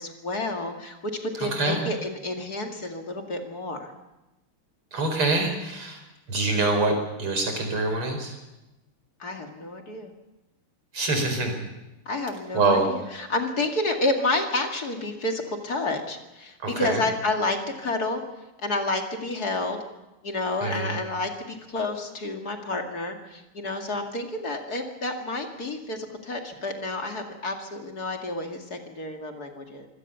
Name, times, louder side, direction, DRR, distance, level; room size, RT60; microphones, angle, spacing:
voice 1, 0.0-3.9 9.2-10.1 12.1-18.2 18.6-19.8 20.2-29.9, left 2 dB, 45° left, 3 dB, 2.7 m, -30 dB
voice 2, 1.4-1.8 4.9-6.0 6.3-8.4 10.9-11.6 12.5-12.9 16.6-17.0 20.6-21.0, right 3 dB, 90° right, 4 dB, 5.6 m, -25 dB
24.5 x 17.5 x 6.9 m, 0.99 s
omnidirectional pair, 2.4 m